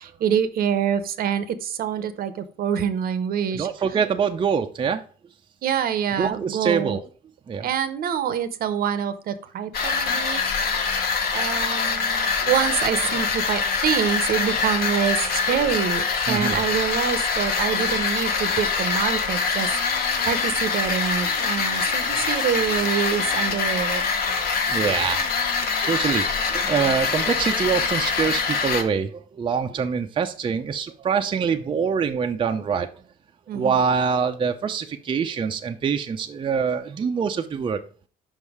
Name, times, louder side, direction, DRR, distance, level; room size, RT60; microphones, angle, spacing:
voice 1, 0.0-3.7 5.6-7.0 7.6-10.4 11.3-24.0 33.5-33.8, right 8 dB, 60° right, 12 dB, 0.8 m, -26 dB
voice 2, 3.5-5.0 6.2-7.0 7.5-7.7 15.5-15.7 16.3-16.6 20.2-20.3 24.3-24.4 24.7-25.3 25.8-32.9 33.5-37.8, right 6 dB, 30° right, 5 dB, 0.6 m, -25 dB
sound 1, 9.7-28.8, left 5 dB, 65° left, 1.3 m, -24 dB
5.5 x 5.4 x 4.8 m, 0.40 s
cardioid pair, 110°, 17 cm